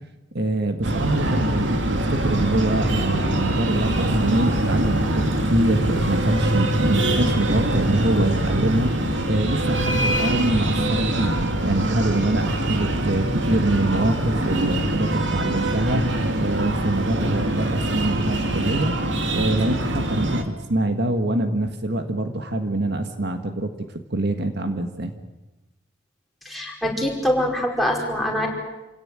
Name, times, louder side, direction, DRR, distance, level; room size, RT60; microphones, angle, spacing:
voice 1, 0.3-5.2 5.5-8.9 9.3-11.4 11.6-18.9 19.3-23.7 24.1-25.1, right 1 dB, 60° right, 6 dB, 1.7 m, -24 dB
Breathing, 0.8-20.4, right 1 dB, 80° right, 2.6 m, -23 dB
voice 2, 26.4-28.5, equal, ahead, -1 dB, 4.9 m, -24 dB
28.0 x 17.5 x 9.0 m, 1.1 s
head